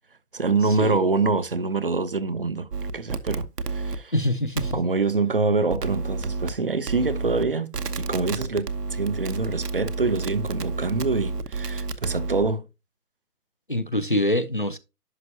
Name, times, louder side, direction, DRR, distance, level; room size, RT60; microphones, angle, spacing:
voice 1, 0.3-4.1 4.7-12.6, right 3 dB, 40° right, 0.5 m, -25 dB
sound 1, 2.7-4.0 4.6-4.7 5.7-6.5 6.9-7.4 7.7-12.4, right 4 dB, 90° right, 1.1 m, -30 dB
voice 2, 4.1-4.8 13.7-14.8, left 1 dB, 35° left, 0.4 m, -24 dB
11.0 x 5.7 x 2.7 m
hypercardioid pair, 155°, 46 cm